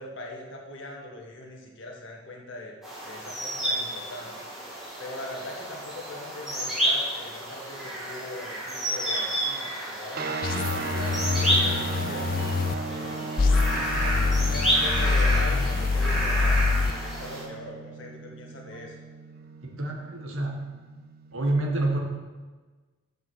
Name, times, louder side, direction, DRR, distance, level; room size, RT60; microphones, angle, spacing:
voice 1, 0.0-2.7 3.0-4.4 5.0-12.3 12.8-13.5 14.0-19.0, left 1 dB, 55° left, 0 dB, 1.7 m, -41 dB
sound 1, 2.8-17.4, equal, ahead, 2.3 m, -30 dB
sound 2, 10.1-21.3, right 4 dB, 45° right, 0.6 m, -37 dB
sound 3, 10.4-12.7 13.4-16.9, left 4 dB, 40° left, 0.4 m, -25 dB
voice 2, 19.6-20.6 21.3-22.0, right 2 dB, 70° right, 1 dB, 1.6 m, -27 dB
7.4 x 7.4 x 6.3 m, 1.3 s
head